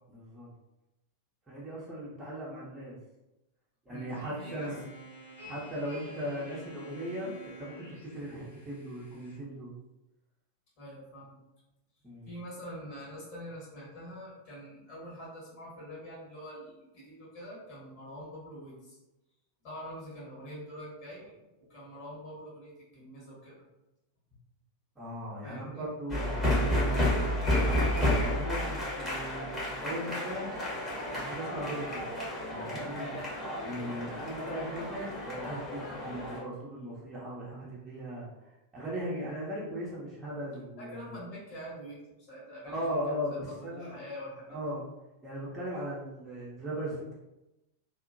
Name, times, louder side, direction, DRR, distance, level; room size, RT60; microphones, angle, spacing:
voice 1, 0.1-0.5 1.5-3.0 3.9-4.8 5.4-7.9 8.1-9.8 12.0-12.3 25.0-30.5 31.1-32.0 32.4-33.1 33.6-38.3 38.7-41.1 42.6-43.9 44.5-44.9 45.2-47.1, equal, 15° right, -8 dB, 0.9 m, -38 dB
voice 2, 3.9-4.8 10.8-11.4 12.3-19.0 19.6-23.5 24.3-24.4 25.4-25.9 32.9-33.2 40.8-42.0 42.3-43.0 43.3-44.6, equal, 45° left, -6 dB, 1.4 m, -45 dB
sound 1, 4.1-9.4, right 1 dB, 80° left, 0.7 m, -49 dB
sound 2, 26.1-36.4, left 1 dB, 15° left, 1.2 m, -31 dB
2.7 x 2.4 x 2.5 m, 0.95 s
figure-of-eight pair, 90°, 0 cm